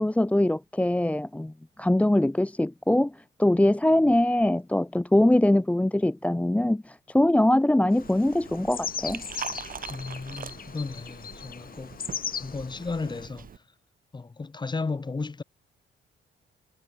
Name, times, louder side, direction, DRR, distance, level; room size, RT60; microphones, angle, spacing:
voice 1, 0.0-1.5 1.8-9.2, left 1 dB, 5° left, 0.7 m, -22 dB
sound 1, 7.9-13.3, left 7 dB, 45° left, 1.8 m, -38 dB
Liquid, 8.0-13.6, right 7 dB, 45° right, 2.5 m, -42 dB
voice 2, 9.9-12.0 12.4-13.5 14.1-15.4, left 4 dB, 20° left, 1.2 m, -34 dB
cardioid pair, 90°, 20 cm